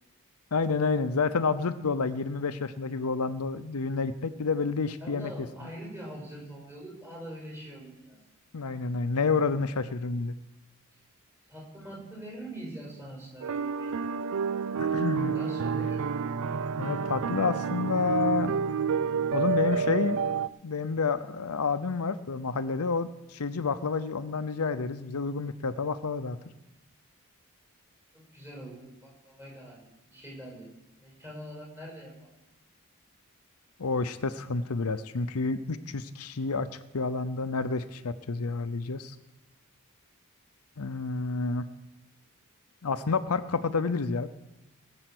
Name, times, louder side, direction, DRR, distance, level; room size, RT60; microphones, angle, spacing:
voice 1, 0.5-5.3 8.5-10.3 14.8-15.3 16.8-18.6 19.3-20.2 20.6-26.4 33.8-36.7 36.9-39.1 40.8-41.7 42.8-44.3, left 4 dB, 80° left, 11 dB, 0.7 m, -29 dB
voice 2, 5.0-8.2 11.5-14.0 15.3-16.0 28.1-30.7 31.0-32.3, right 1 dB, 15° right, -3 dB, 5.7 m, -43 dB
sound 1, 13.4-20.5, right 6 dB, 65° right, 0.4 m, -29 dB
20.0 x 7.8 x 6.1 m, 0.95 s
head